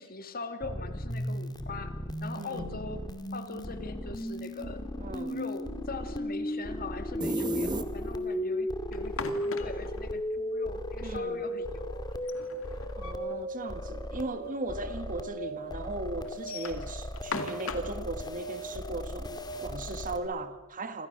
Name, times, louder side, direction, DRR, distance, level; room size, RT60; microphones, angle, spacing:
voice 1, 0.0-3.0 3.3-4.8 5.1-12.1, left 3 dB, 45° left, 2.4 m, -41 dB
sound 1, 0.6-20.2, equal, 20° left, 2.4 m, -36 dB
voice 2, 2.3-2.7 5.0-5.4 11.0-11.4 13.0-21.1, right 2 dB, 40° right, 2.0 m, -37 dB
sound 2, 7.2-8.4, right 2 dB, 20° right, 1.4 m, -33 dB
sound 3, 8.9-10.0 12.1-13.4 13.7-13.8 14.1-14.2 15.0-15.1 16.3-18.0, left 4 dB, 65° left, 2.6 m, -39 dB
28.5 x 27.0 x 6.8 m
head